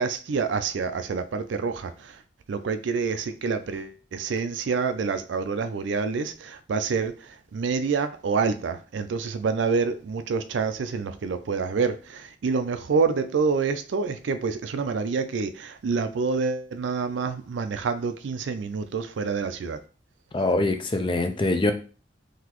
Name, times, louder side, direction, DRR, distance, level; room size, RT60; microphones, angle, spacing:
voice 1, 0.0-2.2 2.5-19.8, right 5 dB, 75° right, 0.4 m, -27 dB
voice 2, 20.3-21.7, left 2 dB, 25° left, 0.4 m, -23 dB
3.9 x 2.8 x 2.9 m
head